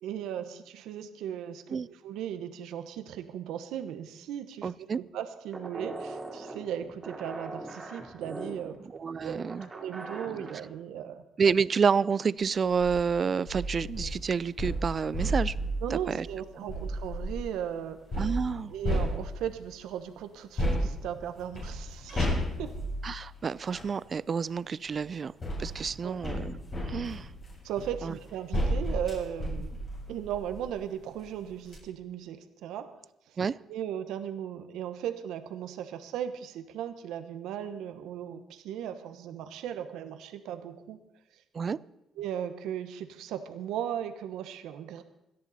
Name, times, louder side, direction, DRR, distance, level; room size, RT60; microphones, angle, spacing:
voice 1, 0.0-8.8 9.2-9.4 9.7-11.2 15.8-18.0 18.7-22.3 22.6-22.7 26.0-26.2 27.6-29.7 30.1-32.9 33.3-33.4 33.7-41.0 41.3-41.4 42.2-45.0, right 9 dB, 90° right, 9 dB, 1.1 m, -37 dB
voice 2, 4.6-5.0 8.9-9.7 11.4-15.5 15.9-16.3 16.6-16.7 18.2-18.7 23.0-25.3 25.6-26.6 26.8-27.3 28.0-28.1 33.4-33.6 41.5-41.8, right 6 dB, 45° right, 20 dB, 0.4 m, -29 dB
sound 1, 5.5-10.7, right 2 dB, 30° right, 3.2 m, -41 dB
sound 2, 12.7-13.0 13.5-17.5 18.1-19.7 20.6-23.9 24.9-30.8 31.2-31.3 31.6-31.8, equal, 40° left, 7.9 m, -33 dB
27.0 x 10.5 x 4.2 m, 0.84 s
cardioid pair, 90°, 0 cm